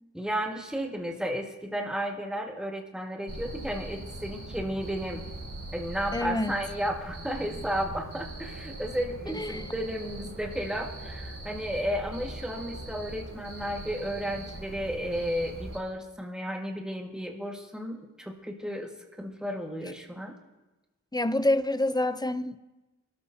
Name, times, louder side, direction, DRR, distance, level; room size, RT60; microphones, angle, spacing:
voice 1, 0.1-5.2 5.7-18.9 19.2-20.3, equal, ahead, 1.7 m, -33 dB
Cricket, 3.3-15.8, right 2 dB, 55° right, 4.4 m, -41 dB
voice 2, 6.1-6.6 9.3-9.7 21.1-22.6, left 1 dB, 15° left, 0.6 m, -27 dB
25.0 x 13.0 x 2.7 m
wide cardioid pair, 65°, 30 cm